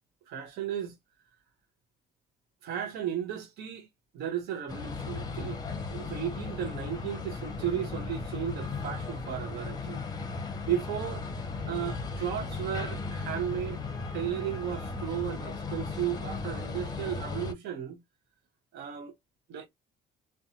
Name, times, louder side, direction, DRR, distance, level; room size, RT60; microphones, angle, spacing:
voice 1, 0.3-0.9 2.6-3.9 4.1-5.6 5.9-10.0 10.6-11.3 11.7-13.8 14.1-18.0 18.7-19.1 19.5-19.7, right 10 dB, 75° right, 0.7 m, -34 dB
sound 1, 4.7-17.5, left 4 dB, 25° left, 0.6 m, -36 dB
2.6 x 2.2 x 2.7 m
cardioid pair, 110°, 17 cm